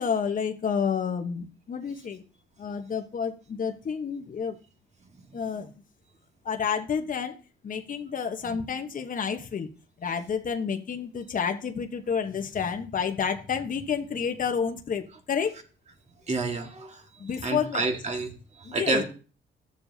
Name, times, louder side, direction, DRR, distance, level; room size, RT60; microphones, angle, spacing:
voice 1, 0.0-2.2 2.6-4.6 5.3-5.7 6.4-7.4 7.6-9.7 10.0-15.5 17.2-17.8 18.6-19.0, left 6 dB, 45° left, 5 dB, 1.1 m, -30 dB
voice 2, 16.3-17.0 17.4-18.3 18.6-19.0, right 3 dB, 35° right, 4 dB, 1.8 m, -29 dB
13.0 x 7.2 x 2.8 m, 0.35 s
cardioid pair, 90°, 20 cm